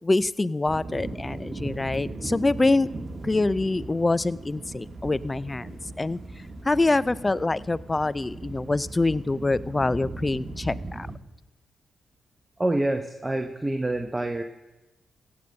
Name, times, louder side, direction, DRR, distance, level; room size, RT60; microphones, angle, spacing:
voice 1, 0.0-2.9 3.2-6.2 6.6-11.1, left 2 dB, 25° left, 20 dB, 0.4 m, -25 dB
sound 1, 0.6-11.2, right 2 dB, 35° right, 1.4 m, -38 dB
voice 2, 12.6-14.4, right 1 dB, 20° right, 6 dB, 0.9 m, -26 dB
16.0 x 6.9 x 6.4 m, 1.1 s
hypercardioid pair, 40°, 0 cm